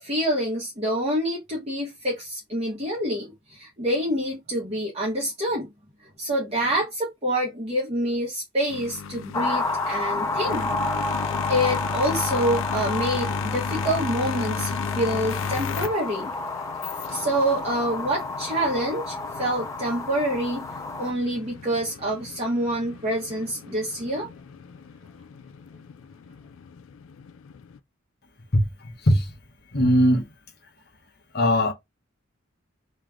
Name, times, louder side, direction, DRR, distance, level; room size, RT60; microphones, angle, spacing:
voice 1, 0.0-5.7 6.2-10.7 11.2-16.3 17.1-20.7 21.0-24.3, equal, 30° right, 1.3 m, -27 dB
sound 1, 8.7-27.8, left 6 dB, 85° left, 0.4 m, -35 dB
sound 2, 9.3-21.1, left 3 dB, 15° left, 0.4 m, -30 dB
voice 2, 28.5-29.3 29.7-30.3 31.3-31.7, equal, 50° left, 1.2 m, -20 dB
3.2 x 3.1 x 3.5 m
head